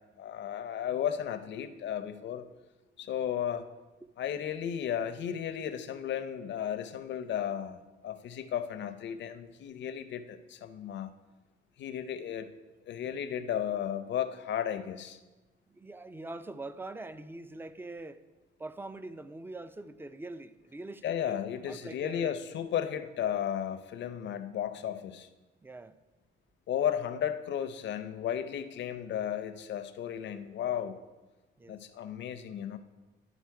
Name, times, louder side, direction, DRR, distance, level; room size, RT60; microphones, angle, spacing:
voice 1, 0.0-2.4 3.0-3.7 4.2-11.1 11.8-12.5 12.9-15.2 21.0-25.3 26.7-31.0 31.7-32.8, left 9 dB, 65° left, 10 dB, 0.6 m, -34 dB
voice 2, 15.7-18.2 18.6-22.4 25.6-26.0 31.6-31.8, right 2 dB, 10° right, 13 dB, 0.4 m, -43 dB
11.0 x 4.1 x 4.6 m, 1.2 s
cardioid pair, 90°, 20 cm